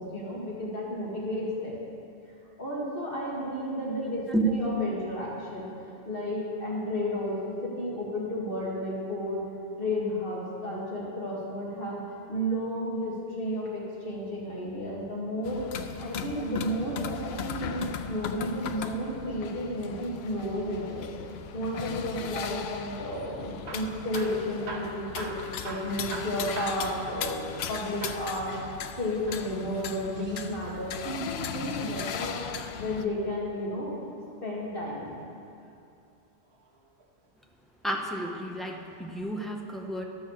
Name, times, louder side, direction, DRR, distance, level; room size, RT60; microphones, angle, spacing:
voice 1, 0.0-1.8 2.6-9.4 9.8-15.6 16.0-21.1 21.5-25.3 25.6-27.4 27.7-34.0 34.4-35.1, equal, 60° left, -5 dB, 2.2 m, -32 dB
sound 1, 15.4-33.1, left 7 dB, 75° left, 0.8 m, -38 dB
Hammer / Drill, 23.5-27.7 28.0-28.3 29.1-30.6 32.3-33.6 35.3-35.7 36.4-37.3 38.0-38.2 38.5-38.6 39.2-39.3, right 2 dB, 80° right, 1.5 m, -42 dB
voice 2, 37.8-40.0, right 2 dB, ahead, 1 dB, 0.7 m, -30 dB
12.0 x 6.2 x 6.6 m, 2.5 s
omnidirectional pair, 1.1 m